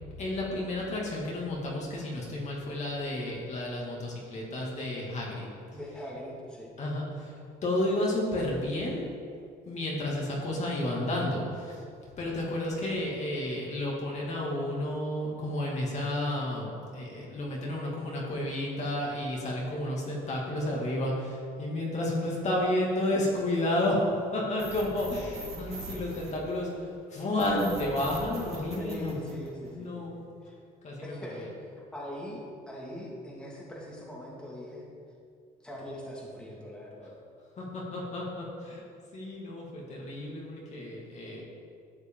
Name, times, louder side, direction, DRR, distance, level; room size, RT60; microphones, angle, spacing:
voice 1, 0.2-5.5 6.8-7.3 7.6-9.0 9.6-11.8 12.2-26.7 27.1-29.1 29.7-30.2 30.8-31.3 37.6-38.8 39.1-41.4, left 1 dB, 45° left, -3 dB, 2.4 m, -31 dB
voice 2, 5.7-6.7 28.8-30.6 31.0-32.4 32.7-34.9 35.6-37.1, left 1 dB, 5° left, -5 dB, 2.2 m, -41 dB
sound 1, 24.6-26.9 27.4-29.8, right 2 dB, 35° right, 2.8 m, -41 dB
12.0 x 8.1 x 3.8 m, 2.3 s
cardioid pair, 110°, 17 cm